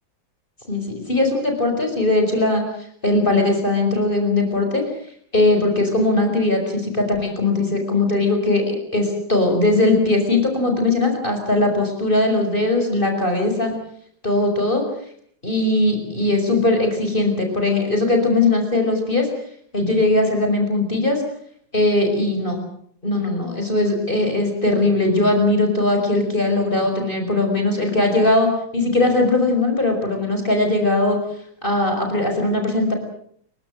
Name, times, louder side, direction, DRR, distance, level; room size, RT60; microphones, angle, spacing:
voice 1, 0.7-2.6 3.0-4.8 5.3-13.7 14.2-14.8 15.4-19.3 19.7-21.2 21.7-22.6 23.0-31.2 31.6-32.9, left 2 dB, 25° left, 3 dB, 5.8 m, -19 dB
29.5 x 17.5 x 7.8 m, 0.65 s
omnidirectional pair, 2.2 m